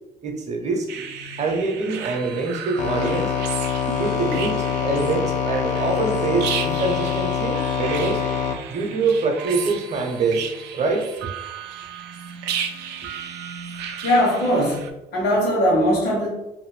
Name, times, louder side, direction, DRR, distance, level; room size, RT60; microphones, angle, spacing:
voice 1, 0.2-1.1 1.4-3.4 4.0-8.2 8.7-11.1, right 3 dB, 45° right, 3 dB, 0.7 m, -25 dB
sound 1, 0.9-14.9, right 7 dB, 80° right, 0.4 m, -34 dB
sound 2, 2.8-8.5, left 7 dB, 45° left, 0.4 m, -25 dB
voice 2, 14.0-16.3, equal, 70° left, -3 dB, 1.1 m, -20 dB
2.7 x 2.6 x 3.1 m, 0.98 s
cardioid pair, 110°, 17 cm